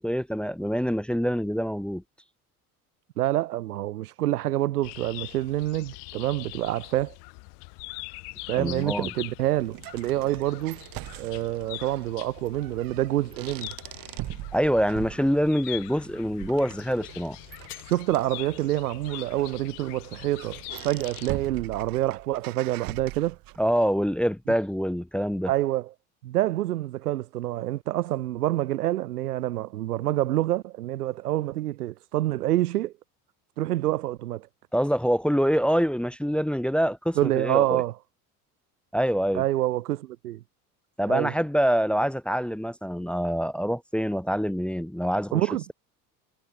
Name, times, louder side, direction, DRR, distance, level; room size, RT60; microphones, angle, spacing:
voice 1, 0.0-2.0 8.6-9.1 14.5-17.4 23.6-25.5 34.7-37.8 38.9-39.4 41.0-45.4, equal, ahead, 0.9 m, -25 dB
voice 2, 3.2-7.1 8.5-10.8 11.2-13.7 17.9-23.4 25.5-25.9 26.2-32.9 33.6-34.5 37.2-37.9 39.3-40.4 41.1-41.3 45.3-45.6, right 15 dB, 85° right, 0.7 m, -27 dB
sound 1, 4.8-21.5, left 38 dB, 65° left, 3.6 m, -43 dB
sound 2, 8.8-23.8, right 18 dB, 50° right, 1.5 m, -42 dB
sound 3, 17.6-20.9, left 10 dB, 85° left, 7.4 m, -52 dB
hypercardioid pair, 70°, 45 cm